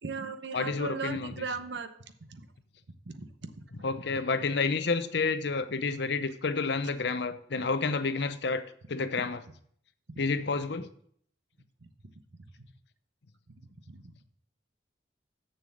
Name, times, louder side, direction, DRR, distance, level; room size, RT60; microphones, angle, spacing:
voice 1, 0.0-1.9 2.3-2.4 3.1-3.3 12.4-12.5 13.9-14.1, right 4 dB, 65° right, 0.9 m, -37 dB
voice 2, 0.5-1.4 3.8-9.4 10.2-10.9, left 4 dB, 60° left, 0.7 m, -30 dB
6.8 x 6.7 x 7.8 m
head